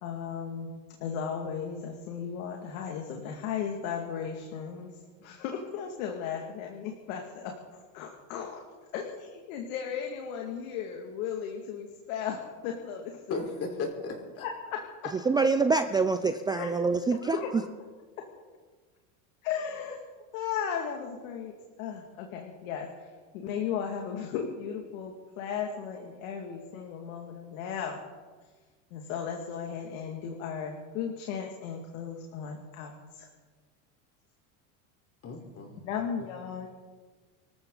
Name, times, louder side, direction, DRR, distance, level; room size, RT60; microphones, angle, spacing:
voice 1, 0.0-4.9 5.2-7.5 7.9-8.6 8.9-13.4 14.4-14.5 16.5-16.8 17.2-17.5 19.4-20.0 20.3-21.5 21.8-28.0 28.9-33.3 35.8-36.7, left 7 dB, 75° left, 2.4 m, -36 dB
voice 2, 13.3-14.4 35.2-35.9 36.2-36.3, left 3 dB, 35° left, 4.3 m, -36 dB
voice 3, 15.3-17.6, right 4 dB, 10° right, 0.4 m, -25 dB
25.5 x 14.0 x 4.0 m
supercardioid pair, 130°, 41 cm